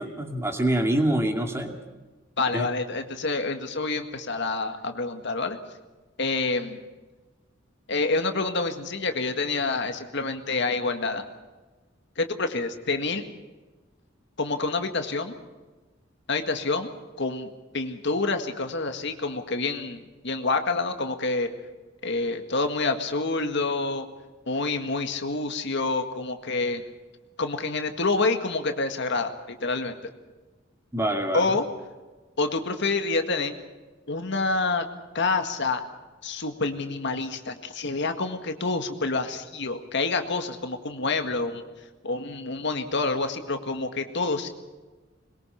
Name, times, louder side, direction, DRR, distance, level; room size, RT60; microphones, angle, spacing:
voice 1, 0.0-1.8 2.5-2.7 30.9-31.5, right 1 dB, 15° right, 4 dB, 2.4 m, -25 dB
voice 2, 2.4-5.6 6.2-6.8 7.9-11.3 12.2-13.2 14.4-15.4 16.3-16.9 17.2-21.5 22.0-24.1 24.5-26.8 27.4-30.0 31.3-31.6 32.4-33.5 34.1-34.9 35.1-35.8 36.2-41.6 42.0-44.5, left 3 dB, 60° left, 6 dB, 1.9 m, -27 dB
22.0 x 22.0 x 5.8 m, 1.2 s
head